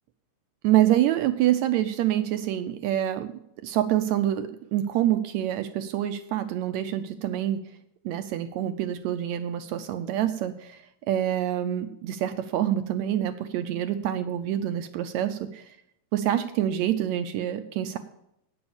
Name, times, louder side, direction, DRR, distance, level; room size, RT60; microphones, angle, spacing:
voice 1, 0.6-3.3 3.6-7.6 8.1-15.8 16.1-18.0, right 12 dB, 80° right, 9 dB, 1.6 m, -26 dB
9.0 x 7.0 x 7.0 m, 0.79 s
omnidirectional pair, 3.6 m